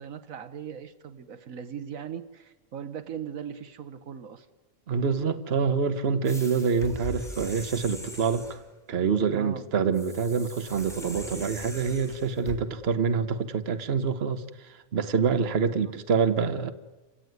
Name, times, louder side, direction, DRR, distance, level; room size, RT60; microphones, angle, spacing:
voice 1, 0.0-4.5 9.3-9.7 15.6-15.7, right 8 dB, 75° right, 1.4 m, -39 dB
voice 2, 4.9-8.6 8.9-16.7, right 5 dB, 50° right, 1.3 m, -26 dB
sound 1, 6.3-8.7 9.9-12.6, equal, ahead, 3.9 m, -41 dB
28.0 x 17.5 x 9.5 m
omnidirectional pair, 1.4 m